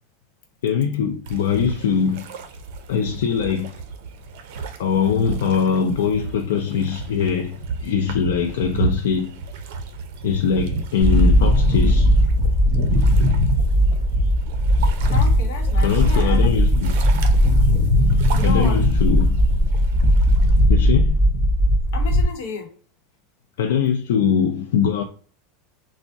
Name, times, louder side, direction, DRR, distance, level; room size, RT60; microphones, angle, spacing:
voice 1, 0.6-2.2 2.9-3.7 4.8-9.4 10.2-12.2 15.8-17.0 18.4-19.4 20.7-21.2 23.6-25.0, left 6 dB, 85° left, 0.3 m, -22 dB
sound 1, 1.3-20.7, right 4 dB, 65° right, 0.5 m, -33 dB
sound 2, 11.0-22.2, equal, 20° right, 1.5 m, -17 dB
voice 2, 15.1-16.5 18.4-18.8 21.9-22.7, left 5 dB, 70° left, 0.8 m, -31 dB
3.4 x 2.0 x 2.5 m
supercardioid pair, 145°, 0 cm